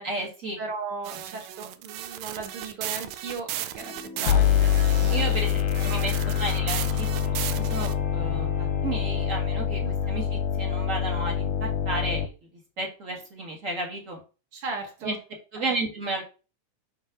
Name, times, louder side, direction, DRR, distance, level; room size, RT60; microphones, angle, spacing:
voice 1, 0.0-0.6 3.8-4.4 5.1-5.5 5.8-12.3 12.8-14.2 15.0-15.2 15.5-16.2, right 2 dB, 35° right, 0 dB, 1.4 m, -33 dB
voice 2, 0.6-3.9 4.2-4.7 5.0-5.3 5.9-6.1 9.8-9.9 14.5-15.2 15.6-15.7, right 4 dB, 50° right, 3 dB, 2.0 m, -37 dB
sound 1, 1.0-7.9, right 12 dB, 80° right, 1.7 m, -36 dB
sound 2, 3.7-9.4, equal, 5° left, 0.8 m, -43 dB
sound 3, 4.3-12.3, left 8 dB, 85° left, 2.1 m, -25 dB
5.7 x 3.4 x 5.8 m, 0.32 s
omnidirectional pair, 3.6 m